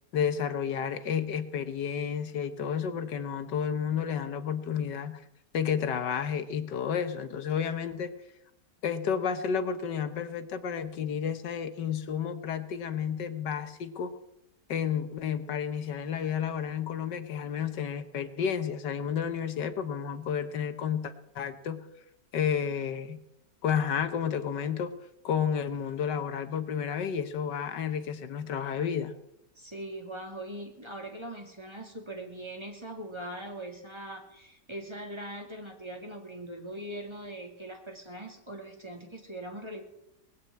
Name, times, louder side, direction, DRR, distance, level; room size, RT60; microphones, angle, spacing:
voice 1, 0.1-5.2 5.5-8.1 8.8-14.2 14.7-21.9 22.3-23.2 23.6-24.9 25.2-29.1, left 7 dB, 75° left, 9 dB, 1.7 m, -31 dB
voice 2, 29.6-39.8, right 1 dB, 15° right, 2 dB, 2.4 m, -41 dB
19.5 x 8.7 x 8.5 m, 0.84 s
omnidirectional pair, 1.9 m